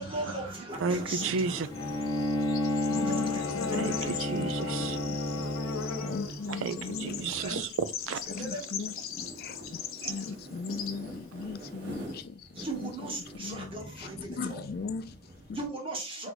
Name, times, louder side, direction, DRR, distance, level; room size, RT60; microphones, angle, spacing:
voice 1, 0.0-1.7 3.0-4.2 7.3-7.5 8.2-8.7 12.5-14.6 15.5-16.3, right 2 dB, 25° right, 1.1 m, -38 dB
sound 1, 0.7-15.7, right 1 dB, 50° right, 1.2 m, -45 dB
voice 2, 0.8-1.7 3.8-5.0 6.5-8.2 10.0-10.1, right 5 dB, 75° right, 0.4 m, -32 dB
Bird / Insect, 1.4-12.0, left 7 dB, 90° left, 0.6 m, -40 dB
Bowed string instrument, 1.7-6.4, left 2 dB, 25° left, 1.0 m, -31 dB
voice 3, 2.9-4.5 5.1-5.2 6.0-7.2 7.5-7.6 8.3-9.6 9.8-12.9 13.4-13.7 14.0-15.6, left 4 dB, 45° left, 0.3 m, -39 dB
3.4 x 3.1 x 3.9 m
head